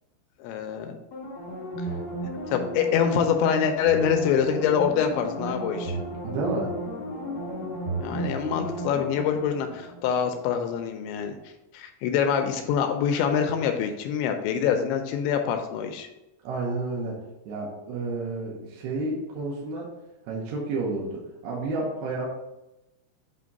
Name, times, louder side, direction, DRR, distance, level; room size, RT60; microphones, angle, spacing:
voice 1, 0.4-1.0 2.2-6.0 8.0-11.4 11.7-16.1, left 7 dB, 85° left, 6 dB, 2.7 m, -25 dB
sound 1, 1.1-10.5 10.8-10.9, right 1 dB, 60° left, 1.6 m, -34 dB
voice 2, 6.2-6.7 16.4-17.2 17.5-19.9 20.3-22.3, right 3 dB, 75° right, -3 dB, 2.5 m, -30 dB
8.6 x 2.9 x 5.2 m, 0.95 s
omnidirectional pair, 5.5 m